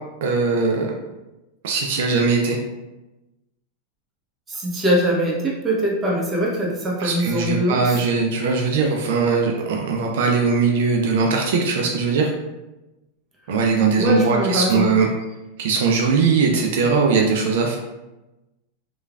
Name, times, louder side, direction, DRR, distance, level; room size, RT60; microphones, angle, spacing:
voice 1, 0.2-0.9 1.6-2.6 7.0-12.3 13.5-15.1 15.6-17.8, right 4 dB, 70° right, 1 dB, 0.4 m, -20 dB
voice 2, 4.5-8.0 14.0-14.9, equal, 20° right, -2 dB, 0.8 m, -22 dB
3.1 x 2.3 x 2.3 m, 1.0 s
hypercardioid pair, 110°, 0 cm